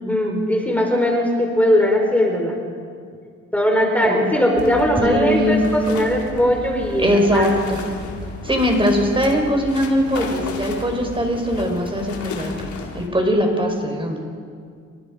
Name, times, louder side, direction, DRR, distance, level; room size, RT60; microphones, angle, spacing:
voice 1, 0.0-2.6 3.5-7.5, equal, 5° left, 1 dB, 4.8 m, -19 dB
sound 1, 4.6-13.1, left 4 dB, 70° left, 4.1 m, -34 dB
voice 2, 5.0-5.6 7.0-7.8 8.4-12.5 12.9-14.2, equal, 15° right, 2 dB, 5.0 m, -20 dB
29.5 x 25.0 x 5.2 m, 2.2 s
cardioid pair, 90°, 30 cm